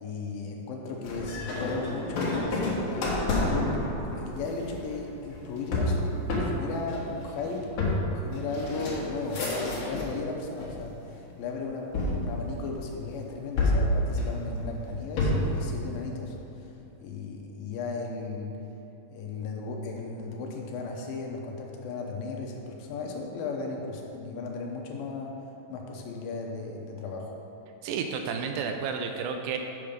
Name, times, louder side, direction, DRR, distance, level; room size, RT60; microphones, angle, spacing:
voice 1, 0.0-3.8 4.2-6.0 6.4-7.7 8.1-16.7 17.0-18.5 19.1-25.4 25.7-27.4, left 4 dB, 75° left, 1 dB, 2.5 m, -36 dB
sound 1, 1.0-10.2 10.6-11.2 11.9-13.0 13.6-15.6, left 2 dB, 60° left, 2.7 m, -29 dB
voice 2, 27.8-29.6, right 6 dB, 80° right, 5 dB, 2.2 m, -31 dB
8.6 x 6.7 x 5.1 m, 2.8 s
omnidirectional pair, 4.4 m